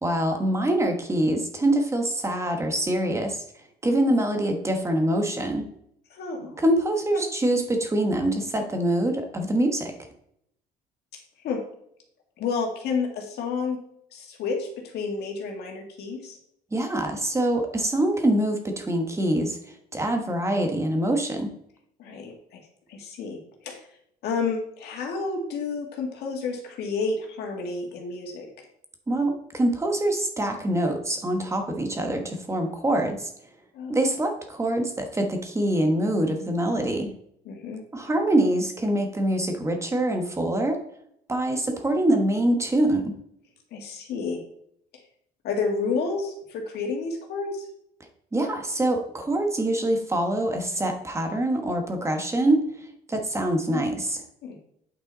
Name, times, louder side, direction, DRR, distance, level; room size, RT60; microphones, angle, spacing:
voice 1, 0.0-3.4 3.8-5.7 6.6-9.9 16.7-19.6 19.9-21.5 29.1-33.3 33.9-37.1 37.9-40.8 41.3-43.1 48.3-52.6 53.1-54.2, right 1 dB, 15° right, 4 dB, 1.3 m, -24 dB
voice 2, 6.1-6.6 7.1-7.2 11.4-11.6 12.4-13.8 14.1-16.4 22.0-22.6 22.9-23.4 23.6-23.8 24.2-28.5 33.7-34.0 37.5-37.8 43.7-44.4 45.4-47.7 53.7-53.9 54.4-54.6, left 4 dB, 75° left, 1 dB, 2.1 m, -30 dB
8.9 x 5.4 x 4.1 m, 0.71 s
cardioid pair, 110°, 17 cm